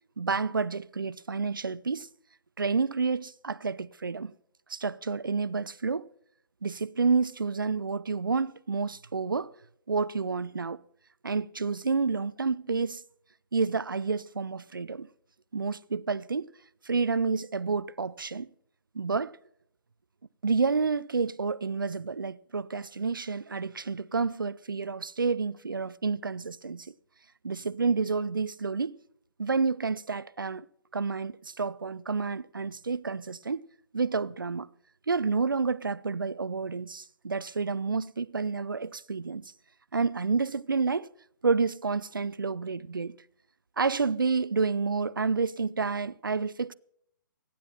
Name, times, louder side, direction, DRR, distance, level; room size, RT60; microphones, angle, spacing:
voice 1, 0.2-2.1 2.6-4.3 4.7-6.1 6.6-9.5 9.9-10.8 11.2-13.0 13.5-15.1 15.5-16.5 16.8-18.5 18.9-19.4 20.4-26.9 27.4-29.0 29.4-30.7 30.9-33.7 33.9-34.7 35.1-39.5 39.9-41.1 41.4-43.1 43.8-46.7, right 4 dB, 75° right, 0.6 m, -29 dB
28.0 x 10.0 x 4.4 m
figure-of-eight pair, 130°, 11 cm